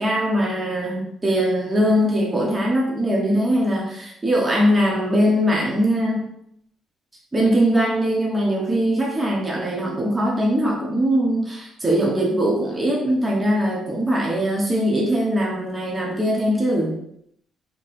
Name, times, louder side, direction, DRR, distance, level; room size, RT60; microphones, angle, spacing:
voice 1, 0.0-6.2 7.3-17.0, equal, 20° right, -3 dB, 1.0 m, -21 dB
4.0 x 3.1 x 2.6 m, 0.71 s
cardioid pair, 90°, 0 cm